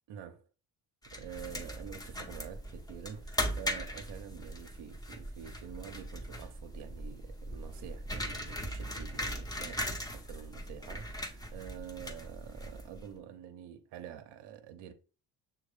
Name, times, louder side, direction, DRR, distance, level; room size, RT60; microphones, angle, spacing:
voice 1, 0.1-0.5 1.1-14.9, right 9 dB, 60° right, 0.7 m, -47 dB
sound 1, 1.0-13.1, equal, 10° left, 0.7 m, -39 dB
6.3 x 2.3 x 3.2 m
supercardioid pair, 75°, 47 cm